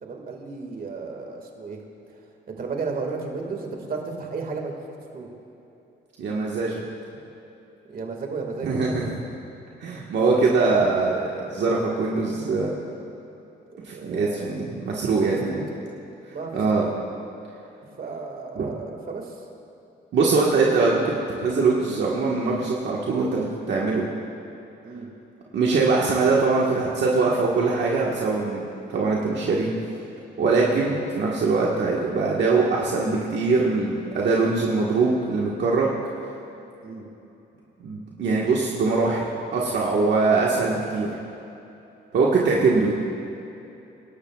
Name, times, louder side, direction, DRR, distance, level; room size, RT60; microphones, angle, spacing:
voice 1, 0.0-1.8 2.5-4.7 5.1-5.3 7.9-9.2 10.3-10.4 10.7-10.8 13.7-14.5 16.3-17.0 18.0-19.4 24.8-25.1 36.8-37.0, right 4 dB, 45° right, 2 dB, 2.1 m, -34 dB
voice 2, 6.2-6.8 8.6-9.2 9.8-12.7 13.8-15.7 16.5-16.9 18.5-18.6 20.1-24.0 25.5-28.6 28.9-29.7 30.4-35.9 37.8-39.2 39.5-41.1 42.1-42.9, right 4 dB, 65° right, -4 dB, 1.6 m, -22 dB
25.0 x 12.0 x 2.4 m, 2.9 s
cardioid pair, 90°, 20 cm